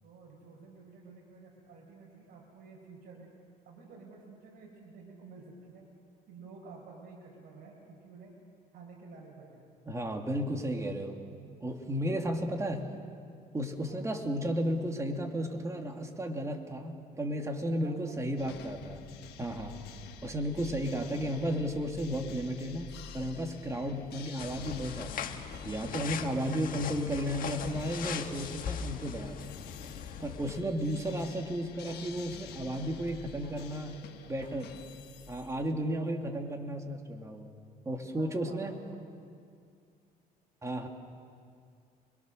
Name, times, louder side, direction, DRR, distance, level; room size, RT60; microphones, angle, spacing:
voice 1, 0.0-3.3 3.6-5.9 6.3-8.4 8.7-9.8 12.5-12.7 13.8-14.1 17.7-18.7 20.8-21.1 33.4-34.3 35.9-36.4 37.9-39.1, right 4 dB, 60° right, -2 dB, 4.9 m, -52 dB
voice 2, 9.9-11.2 11.6-12.9 13.5-19.0 19.4-19.8 20.2-29.5 30.0-33.9 34.3-34.7 35.3-37.5 37.9-38.8 40.6-40.9, equal, 15° right, 3 dB, 2.4 m, -34 dB
sound 1, 18.4-35.7, left 8 dB, 75° left, 1.6 m, -49 dB
sound 2, 24.4-30.6, left 7 dB, 55° left, 1.6 m, -40 dB
sound 3, 25.5-35.1, right 2 dB, 45° right, 6.7 m, -58 dB
28.5 x 22.0 x 6.5 m, 2.2 s
cardioid pair, 110°, 17 cm